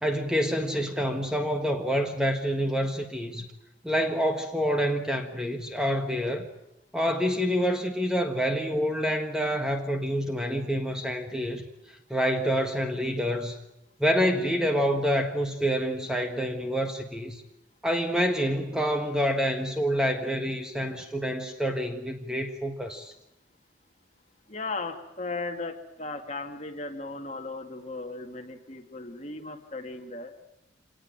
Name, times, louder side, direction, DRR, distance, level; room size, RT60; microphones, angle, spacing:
voice 1, 0.0-3.5 3.8-6.5 6.9-11.7 12.1-13.5 14.0-17.4 17.8-23.1, equal, 5° right, 5 dB, 1.5 m, -27 dB
voice 2, 24.5-30.3, left 3 dB, 35° left, 4 dB, 2.3 m, -36 dB
26.0 x 19.0 x 9.0 m, 0.86 s
head